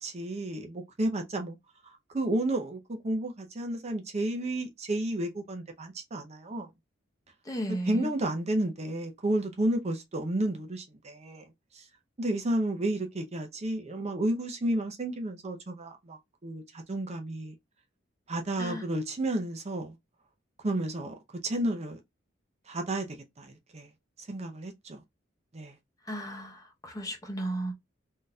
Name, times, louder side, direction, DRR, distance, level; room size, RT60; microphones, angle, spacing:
voice 1, 0.0-1.6 1.8-6.7 7.9-11.4 11.7-11.8 12.2-17.5 18.3-20.0 20.6-21.1 21.4-22.0 22.7-23.9 24.3-25.0 25.5-25.8, right 1 dB, 35° right, 0.6 m, -32 dB
voice 2, 7.4-8.1 18.6-18.8 26.1-27.7, right 1 dB, 20° left, 0.9 m, -35 dB
3.6 x 2.7 x 2.3 m
head